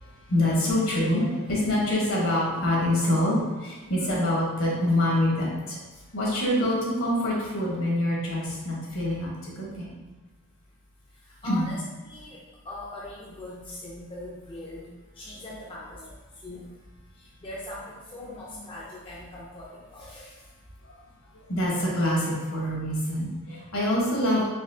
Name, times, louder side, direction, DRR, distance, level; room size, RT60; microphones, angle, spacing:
voice 1, 0.0-5.8 6.1-9.9 11.4-11.7 18.5-18.6 20.8-20.9 21.3-24.4, left 1 dB, 70° left, -4 dB, 1.2 m, -26 dB
voice 2, 11.3-16.0 16.4-16.6 17.2-20.3, left 1 dB, 25° left, -6 dB, 0.4 m, -41 dB
4.1 x 2.8 x 2.7 m, 1.2 s
head